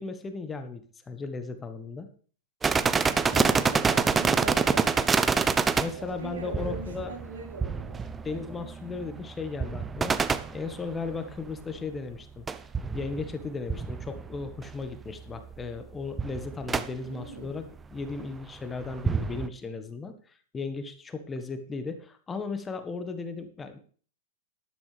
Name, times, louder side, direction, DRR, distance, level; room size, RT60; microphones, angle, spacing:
voice 1, 0.0-2.1 5.8-7.1 8.2-10.2 10.5-12.5 12.9-23.8, left 4 dB, 20° left, 8 dB, 1.5 m, -36 dB
sound 1, 2.6-11.5 12.5-14.8 15.1-15.2 15.5-15.8 16.2-16.9 18.0-18.2 18.8-19.5, right 5 dB, 15° right, 0.7 m, -27 dB
voice 2, 3.3-5.1 5.9-8.1 17.0-17.6, right 3 dB, 75° right, -1 dB, 5.0 m, -41 dB
12.0 x 12.0 x 3.4 m, 0.43 s
hypercardioid pair, 100°, 0 cm